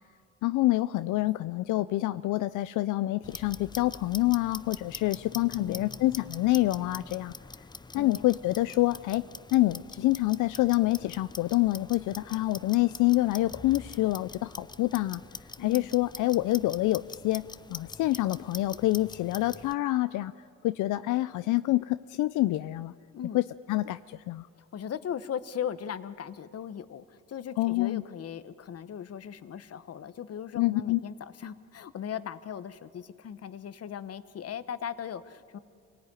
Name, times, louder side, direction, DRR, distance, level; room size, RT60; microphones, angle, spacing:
voice 1, 0.4-7.3 7.9-9.2 9.5-15.2 15.6-20.3 20.6-22.9 23.3-24.5 27.6-28.0 30.5-31.0, left 17 dB, 80° left, 12 dB, 0.5 m, -27 dB
Clock, 3.2-19.7, left 3 dB, 15° left, 0.6 m, -44 dB
voice 2, 5.5-6.0 7.9-8.2 15.6-15.9 23.1-23.4 24.7-35.6, left 8 dB, 55° left, 13 dB, 1.2 m, -38 dB
27.0 x 18.0 x 9.8 m, 2.3 s
cardioid pair, 90°, 30 cm